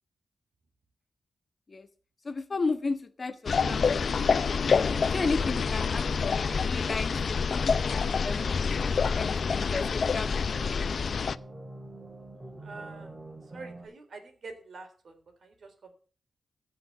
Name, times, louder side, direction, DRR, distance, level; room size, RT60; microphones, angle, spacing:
voice 1, 2.2-4.1 4.7-7.8 8.2-8.5 9.0-10.9, left 3 dB, 40° left, 10 dB, 1.2 m, -34 dB
sound 1, 3.5-11.4, left 5 dB, 60° left, 0.5 m, -27 dB
sound 2, 3.6-13.9, right 2 dB, 30° right, 6.3 m, -45 dB
voice 2, 12.6-13.1 13.4-15.9, right 3 dB, 65° right, 5 dB, 3.9 m, -46 dB
16.0 x 6.0 x 7.2 m, 0.40 s
wide cardioid pair, 100°, 0 cm